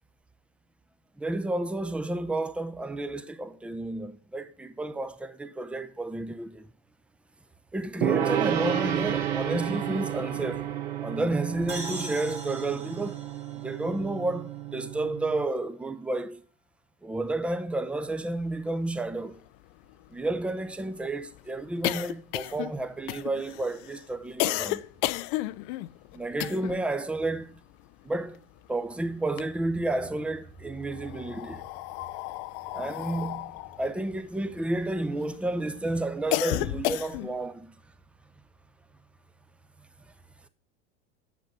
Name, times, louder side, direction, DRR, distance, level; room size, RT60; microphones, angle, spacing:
voice 1, 1.2-6.7 7.7-10.7 11.0-13.2 13.6-16.4 17.0-19.4 20.1-24.8 26.1-27.6 28.0-28.4 28.7-31.6 32.7-37.7, right 2 dB, 5° right, 0.6 m, -31 dB
Gong, 8.0-15.5, right 10 dB, 70° right, 1.6 m, -31 dB
sound 1, 11.7-15.2, right 2 dB, 20° right, 2.1 m, -42 dB
sound 2, 18.7-18.8 19.0-19.1 19.5-26.9 27.2-28.8 29.1-30.1 30.8-35.3 35.7-37.5, left 16 dB, 55° left, 0.6 m, -33 dB
8.3 x 7.3 x 5.3 m
hypercardioid pair, 95°, 33 cm